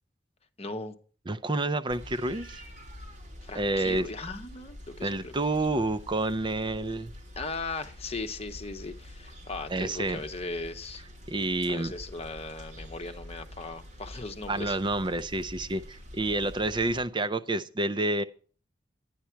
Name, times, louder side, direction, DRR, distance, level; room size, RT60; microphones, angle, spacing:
voice 1, 0.6-1.0 3.4-5.3 7.4-11.0 11.6-14.8, left 3 dB, 35° left, 1.1 m, -38 dB
voice 2, 1.3-2.6 3.5-4.1 5.0-7.1 9.7-10.2 11.3-11.9 14.5-18.2, right 2 dB, 25° right, 0.5 m, -29 dB
sound 1, 1.9-17.0, left 1 dB, 40° right, 3.4 m, -46 dB
11.5 x 10.0 x 4.5 m
head